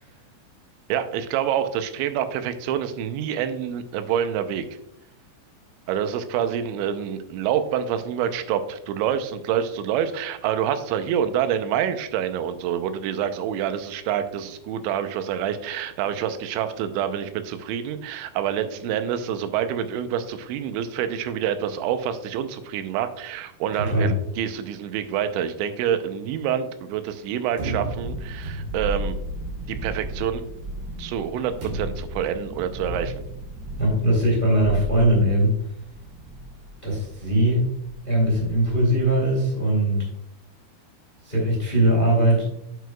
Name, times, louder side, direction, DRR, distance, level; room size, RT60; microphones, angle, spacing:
voice 1, 0.9-4.7 5.9-29.2 29.7-30.4 31.0-33.1, right 9 dB, 90° right, 9 dB, 3.0 m, -27 dB
voice 2, 23.8-24.1 33.8-35.5 36.8-37.7 38.0-40.0 41.2-42.6, right 1 dB, 20° left, -2 dB, 1.4 m, -20 dB
sound 1, 27.6-29.1 31.6-32.2, right 2 dB, 45° right, 3.7 m, -33 dB
Thunderstorm, 27.8-39.2, right 1 dB, 65° right, 2.3 m, -35 dB
9.1 x 7.9 x 2.3 m, 0.75 s
omnidirectional pair, 5.2 m